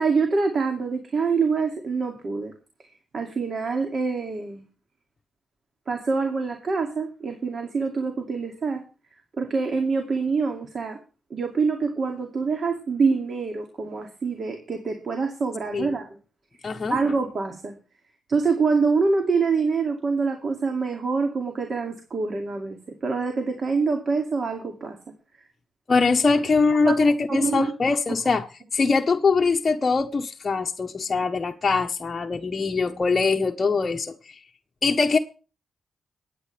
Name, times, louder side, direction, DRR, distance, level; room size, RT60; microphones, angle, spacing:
voice 1, 0.0-2.5 3.1-4.6 5.9-8.8 9.4-11.0 11.3-16.1 16.5-16.6 16.9-17.7 18.3-25.0 26.9-27.0 27.3-27.7, right 4 dB, 50° right, 2.4 m, -25 dB
voice 2, 16.6-17.0 25.9-28.5 28.7-34.4 34.8-35.2, left 4 dB, 40° left, 1.0 m, -22 dB
22.5 x 9.4 x 3.4 m
cardioid pair, 75°, 0 cm